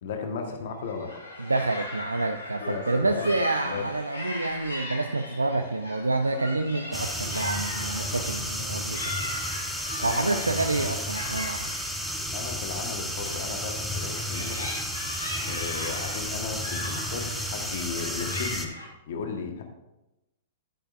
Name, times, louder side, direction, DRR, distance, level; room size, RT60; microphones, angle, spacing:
voice 1, 0.0-1.1 2.6-3.3 3.6-3.9 5.5-5.6 10.0-10.5 10.7-10.9 12.3-14.6 15.5-18.7 19.1-19.6, left 5 dB, 60° left, 4 dB, 1.4 m, -35 dB
sound 1, 0.8-18.9, left 1 dB, 90° left, 2.6 m, -38 dB
voice 2, 1.4-9.1 10.0-11.8, right 2 dB, 90° right, 6 dB, 0.5 m, -28 dB
sound 2, 6.9-18.7, equal, ahead, 1.1 m, -32 dB
11.5 x 8.6 x 2.6 m, 0.98 s
figure-of-eight pair, 110°, 0 cm